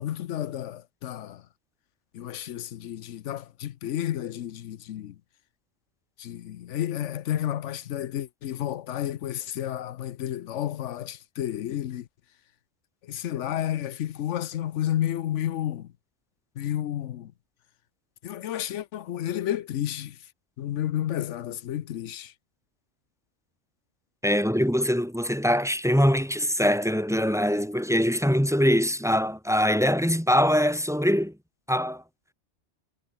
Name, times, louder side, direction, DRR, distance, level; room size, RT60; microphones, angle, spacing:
voice 1, 0.0-1.4 2.1-5.1 6.2-12.0 13.1-15.9 16.6-17.3 18.2-20.1 20.6-22.3, left 11 dB, 85° left, 1.0 m, -31 dB
voice 2, 24.2-31.3 31.7-32.0, equal, ahead, 2.4 m, -23 dB
omnidirectional pair, 1.2 m